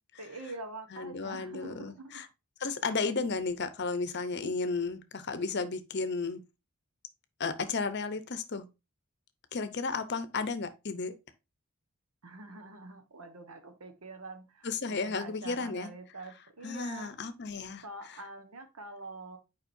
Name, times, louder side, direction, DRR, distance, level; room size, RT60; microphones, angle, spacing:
voice 1, 0.2-2.2 12.2-17.1 17.8-19.4, right 3 dB, 75° right, 1.2 m, -45 dB
voice 2, 0.9-2.3 2.6-6.4 7.4-8.6 9.5-11.1 14.6-15.9 16.6-17.8, left 4 dB, 50° left, 0.7 m, -33 dB
7.3 x 4.9 x 2.6 m
head